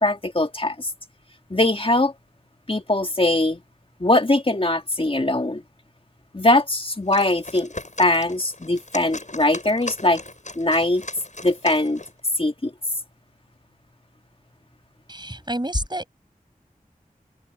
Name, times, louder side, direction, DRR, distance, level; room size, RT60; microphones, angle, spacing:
voice 1, 0.0-0.9 1.5-2.1 2.7-3.6 4.0-5.6 6.3-7.7 8.0-10.2 10.5-11.0 11.4-12.0 12.4-12.7, left 2 dB, 40° left, 1.7 m, -21 dB
sound 1, 6.9-12.2, left 2 dB, 55° left, 8.0 m, -38 dB
voice 2, 15.1-16.1, right 1 dB, 30° right, 5.7 m, -30 dB
wide cardioid pair, 45°, 15 cm